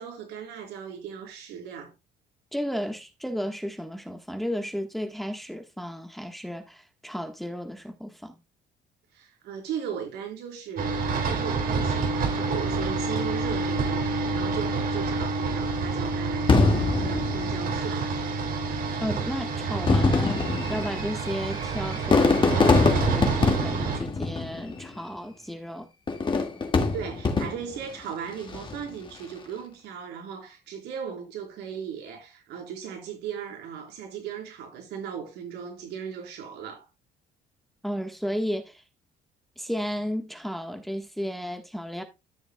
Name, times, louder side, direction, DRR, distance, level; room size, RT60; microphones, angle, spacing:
voice 1, 0.0-1.9 9.1-18.4 26.9-36.9, right 8 dB, 85° right, 4.4 m, -37 dB
voice 2, 2.5-8.4 19.0-20.4 20.7-25.9 37.8-38.8 39.6-42.0, equal, ahead, 1.4 m, -33 dB
sound 1, 10.8-24.0, right 4 dB, 60° right, 3.2 m, -28 dB
Fireworks, 16.5-18.1 19.0-19.1 19.7-25.0 26.1-27.9 28.4-28.9, left 3 dB, 30° left, 2.0 m, -24 dB
13.5 x 6.9 x 2.3 m
cardioid pair, 110°, 17 cm